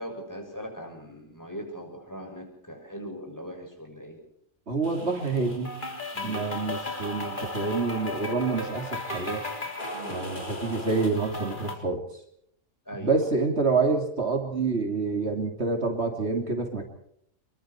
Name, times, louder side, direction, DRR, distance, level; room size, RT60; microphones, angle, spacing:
voice 1, 0.0-4.2 6.1-6.4 9.9-10.2 12.8-13.2, equal, 15° left, 2 dB, 6.5 m, -40 dB
voice 2, 4.7-5.7 6.2-9.4 10.1-12.0 13.0-16.8, right 4 dB, 60° right, 3 dB, 3.1 m, -27 dB
sound 1, 4.8-11.7, left 1 dB, 40° left, 3.9 m, -35 dB
26.5 x 23.0 x 4.5 m, 0.69 s
omnidirectional pair, 1.3 m